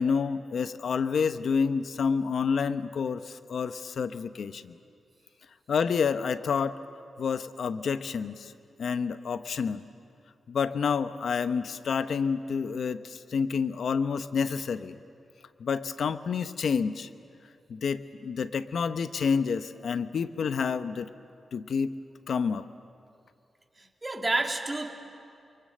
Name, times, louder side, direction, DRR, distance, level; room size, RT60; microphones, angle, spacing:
voice 1, 0.0-4.7 5.7-6.8 7.2-8.5 8.8-9.8 10.5-15.0 15.6-17.1 17.7-21.1 21.5-21.9 22.3-22.6, left 6 dB, 70° left, 12 dB, 0.8 m, -29 dB
voice 2, 23.8-24.9, right 2 dB, 25° right, 2 dB, 2.9 m, -30 dB
29.5 x 23.5 x 7.6 m, 2.5 s
cardioid pair, 70°, 0 cm